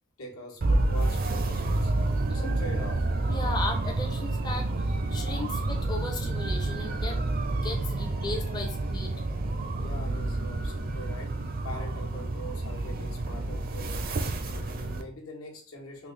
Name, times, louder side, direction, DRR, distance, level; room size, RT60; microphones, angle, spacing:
voice 1, 0.2-3.1 9.8-14.2 14.5-16.1, left 1 dB, 85° left, 1.1 m, -43 dB
sound 1, 0.6-15.0, right 2 dB, 45° right, 0.5 m, -29 dB
voice 2, 2.3-2.7 3.3-7.2 7.6-9.1, left 2 dB, 20° left, 0.5 m, -36 dB
3.7 x 2.4 x 3.2 m
head